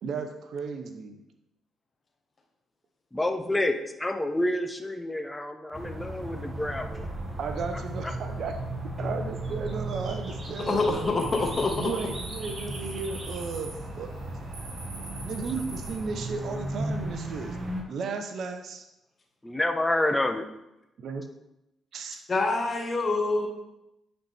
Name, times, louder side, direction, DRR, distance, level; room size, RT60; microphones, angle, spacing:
voice 1, 0.0-1.2 7.4-8.6 9.0-11.1 11.8-14.1 15.2-17.6 17.9-18.8 21.0-21.2 21.9-22.2, right 4 dB, 60° right, 6 dB, 0.7 m, -34 dB
voice 2, 3.1-7.1 8.0-8.1 19.4-20.5, left 1 dB, 15° left, 7 dB, 0.8 m, -28 dB
sound 1, 5.7-17.8, right 1 dB, 30° right, 1.4 m, -36 dB
voice 3, 10.6-11.9 22.3-23.5, left 3 dB, 40° left, 2 dB, 1.3 m, -26 dB
sound 2, 11.0-16.0, right 3 dB, 85° right, 1.3 m, -44 dB
sound 3, 11.1-16.0, left 2 dB, 75° left, 0.7 m, -47 dB
9.1 x 4.2 x 3.4 m, 0.90 s
hypercardioid pair, 45°, 0 cm